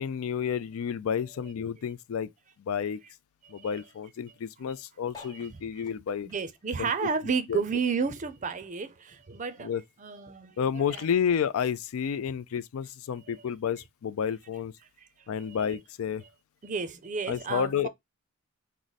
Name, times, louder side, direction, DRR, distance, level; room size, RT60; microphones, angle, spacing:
voice 1, 0.0-2.3 2.6-3.0 3.5-6.3 6.8-6.9 7.5-7.6 9.6-9.8 10.6-14.7 15.3-16.2 17.3-17.9, left 7 dB, 75° left, 0.4 m, -30 dB
sound 1, 5.1-7.8 8.2-9.7 10.2-10.3 10.4-10.5 10.7-11.1 11.9-12.0, left 4 dB, 20° left, 0.9 m, -53 dB
voice 2, 6.3-8.9 9.3-9.7 10.0-11.1 15.6-15.7 16.6-17.9, right 5 dB, 35° right, 0.5 m, -31 dB
4.7 x 2.0 x 4.0 m
head